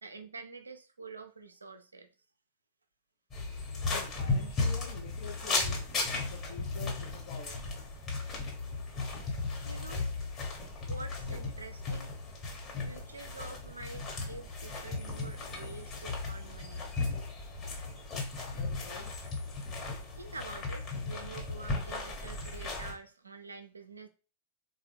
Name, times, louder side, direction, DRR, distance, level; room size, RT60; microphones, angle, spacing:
voice 1, 0.0-2.1 9.7-10.1 10.9-12.1 12.8-16.9 20.1-24.1, right 3 dB, 80° right, 0.4 m, -47 dB
sound 1, 3.3-22.9, left 3 dB, 25° left, 1.3 m, -36 dB
voice 2, 3.9-7.7 18.6-19.1, left 5 dB, 50° left, 0.8 m, -48 dB
3.6 x 2.4 x 3.3 m
figure-of-eight pair, 90°, 0 cm